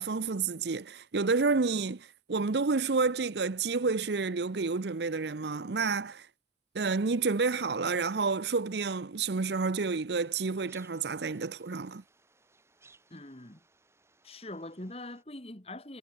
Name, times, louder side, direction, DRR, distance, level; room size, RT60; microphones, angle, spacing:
voice 1, 0.0-6.3 6.7-12.0, right 4 dB, 75° right, 0.7 m, -30 dB
sound 1, 10.2-15.2, right 3 dB, 15° right, 6.3 m, -63 dB
voice 2, 13.1-13.6 14.2-16.0, left 1 dB, 35° left, 2.3 m, -43 dB
head